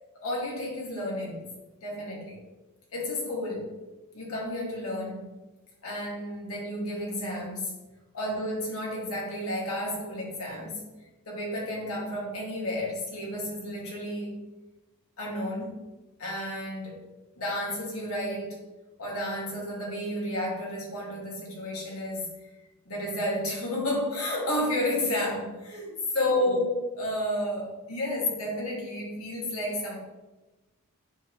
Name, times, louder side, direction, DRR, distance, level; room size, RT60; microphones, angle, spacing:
voice 1, 0.2-1.5 1.8-2.4 2.9-3.8 4.1-5.3 5.8-7.7 8.1-10.9 11.3-14.4 15.2-15.8 16.2-17.0 17.4-18.6 19.0-22.3 22.9-30.0, left 1 dB, 75° left, -3 dB, 2.4 m, -31 dB
9.0 x 5.7 x 3.2 m, 1.1 s
head